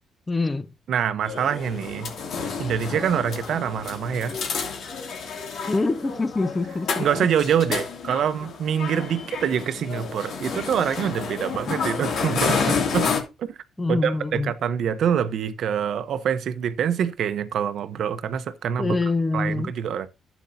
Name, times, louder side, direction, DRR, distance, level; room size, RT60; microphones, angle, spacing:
voice 1, 0.3-0.7 5.7-7.3 7.7-7.8 13.8-14.5 18.8-19.7, left 3 dB, 20° left, 1.0 m, -25 dB
voice 2, 0.9-2.1 2.6-4.3 7.0-13.1 13.4-13.5 13.9-19.0 19.3-20.1, right 8 dB, 70° right, 0.9 m, -25 dB
sound 1, 1.2-13.2, left 5 dB, 70° left, 2.5 m, -30 dB
11.5 x 8.1 x 2.7 m
cardioid pair, 90°, 0 cm